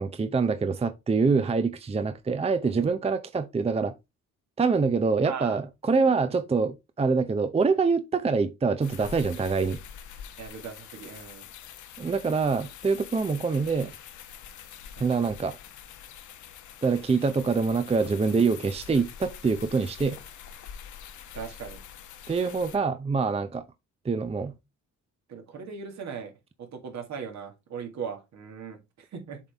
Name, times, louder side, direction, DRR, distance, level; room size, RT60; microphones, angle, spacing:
voice 1, 0.0-3.9 4.6-9.8 12.0-13.9 15.0-15.6 16.8-20.2 22.3-23.6 24.0-24.5, right 4 dB, 20° right, 0.6 m, -25 dB
voice 2, 5.2-5.6 6.3-6.4 10.4-11.5 15.0-15.5 21.3-21.8 25.3-26.3 26.6-29.4, right 6 dB, 65° right, 2.0 m, -39 dB
sound 1, 8.8-22.8, left 8 dB, 75° left, 1.1 m, -45 dB
7.4 x 4.0 x 3.4 m
cardioid pair, 90°, 30 cm